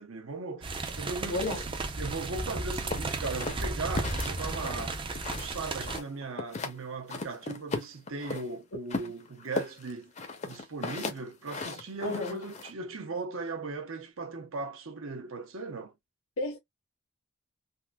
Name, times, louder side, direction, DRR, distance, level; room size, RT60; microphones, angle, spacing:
voice 1, 0.0-5.0 5.3-10.1 10.4-15.9, right 3 dB, 65° right, 0.8 m, -38 dB
sound 1, 0.6-6.0, right 2 dB, 25° right, 0.5 m, -34 dB
voice 2, 1.2-1.7 4.4-4.5 9.0-9.1 12.0-12.4 16.4-16.6, left 2 dB, 65° left, 0.8 m, -33 dB
sound 2, 2.9-5.6 5.9-6.8 7.1-8.5 8.9-12.7, left 3 dB, 30° left, 0.6 m, -36 dB
3.5 x 2.5 x 2.2 m
head